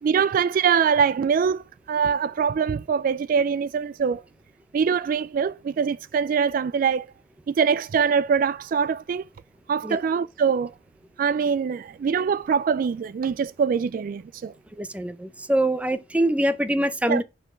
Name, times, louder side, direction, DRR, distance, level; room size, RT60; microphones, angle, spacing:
voice 1, 0.0-4.2 4.7-7.1 7.5-9.3 9.7-10.7 11.2-14.5 17.1-17.2, right 6 dB, 50° right, 0.3 m, -23 dB
voice 2, 14.8-17.2, right 1 dB, 10° right, 0.6 m, -24 dB
5.7 x 4.6 x 6.1 m
head